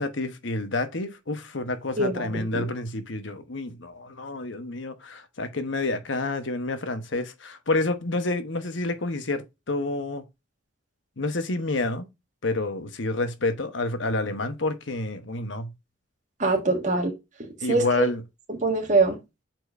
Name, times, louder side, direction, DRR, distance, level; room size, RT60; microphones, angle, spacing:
voice 1, 0.0-10.2 11.2-12.1 12.4-15.7 17.6-18.2, left 2 dB, 70° left, 1.1 m, -29 dB
voice 2, 2.0-2.7 16.4-17.1 17.4-18.0 18.5-19.2, right 3 dB, 40° right, 1.8 m, -24 dB
8.1 x 4.5 x 2.6 m
head